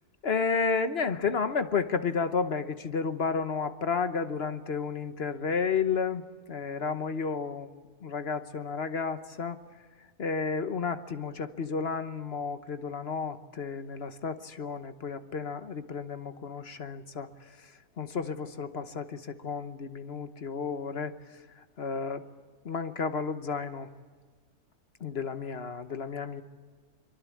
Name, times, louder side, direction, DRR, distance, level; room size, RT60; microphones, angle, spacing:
voice 1, 0.2-7.7 8.0-9.6 10.2-17.7 18.0-21.1 21.8-22.2 22.6-23.9 25.0-26.4, left 5 dB, 45° left, 10 dB, 1.2 m, -32 dB
24.0 x 23.5 x 8.5 m, 1.5 s
omnidirectional pair, 1.5 m